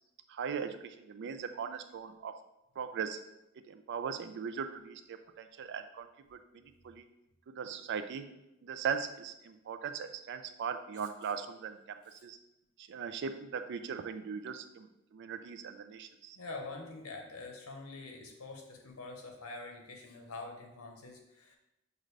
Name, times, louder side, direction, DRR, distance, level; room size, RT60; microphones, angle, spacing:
voice 1, 0.3-2.3 2.8-3.2 3.7-7.1 7.5-8.3 8.6-12.0 12.2-12.4 12.8-14.9 15.1-16.4, right 6 dB, 55° right, 9 dB, 0.3 m, -39 dB
voice 2, 16.3-21.6, left 3 dB, 85° left, 2 dB, 0.8 m, -45 dB
6.4 x 2.5 x 3.2 m, 0.90 s
head